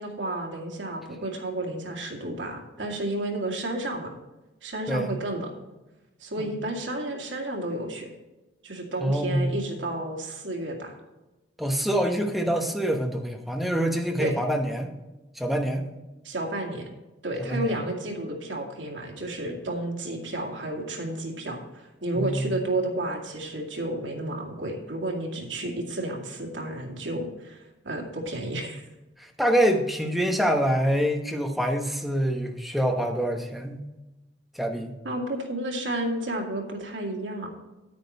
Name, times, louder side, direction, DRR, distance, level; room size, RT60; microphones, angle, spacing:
voice 1, 0.0-4.1 4.6-5.5 6.2-8.1 8.6-11.0 14.2-14.3 16.2-16.9 17.2-28.8 35.0-37.5, right 1 dB, 90° right, 1 dB, 2.2 m, -31 dB
voice 2, 4.9-5.2 6.4-6.5 9.0-9.6 11.6-14.9 15.3-15.8 17.4-17.8 22.1-22.5 29.2-33.8 34.5-35.0, equal, ahead, 3 dB, 1.0 m, -26 dB
9.5 x 9.1 x 4.3 m, 1.1 s
head